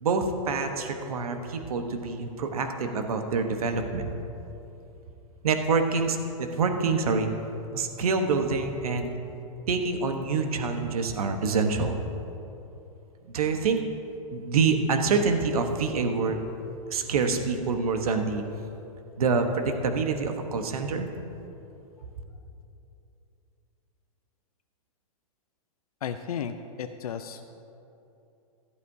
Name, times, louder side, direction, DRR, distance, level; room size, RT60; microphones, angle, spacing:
voice 1, 0.0-4.1 5.4-7.3 7.7-9.1 9.7-12.0 13.3-13.8 14.3-16.4 16.9-18.4 19.2-21.1, right 4 dB, 80° right, 5 dB, 1.2 m, -26 dB
voice 2, 26.0-27.4, left 7 dB, 90° left, 7 dB, 0.6 m, -34 dB
16.0 x 12.0 x 2.7 m, 2.9 s
hypercardioid pair, 150°, 18 cm